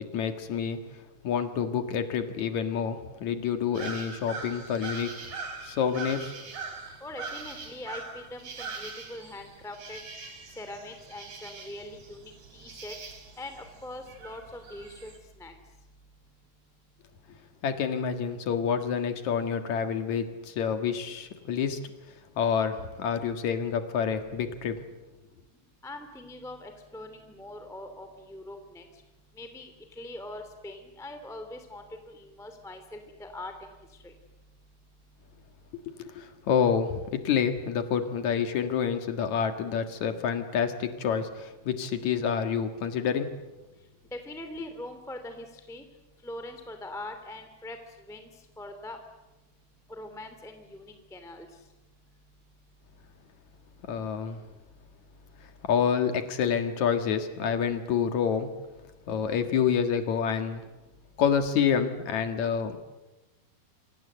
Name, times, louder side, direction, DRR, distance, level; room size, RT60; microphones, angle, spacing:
voice 1, 0.1-0.8 1.2-5.1 5.6-6.3 17.6-21.8 22.4-24.8 35.7-43.4 53.8-54.4 55.6-58.5 59.1-60.6 61.2-62.9, left 7 dB, 55° left, 7 dB, 2.6 m, -28 dB
sound 1, 3.7-15.2, right 4 dB, 50° right, 4.4 m, -42 dB
voice 2, 7.0-10.0 10.6-12.9 13.4-15.1 15.4-15.5 25.8-28.8 29.4-33.5 34.0-34.1 44.1-45.8 46.2-47.8 48.1-48.3 48.6-49.0 49.9-51.5, left 1 dB, ahead, 7 dB, 1.9 m, -42 dB
29.0 x 24.5 x 8.1 m, 1.1 s
omnidirectional pair, 4.6 m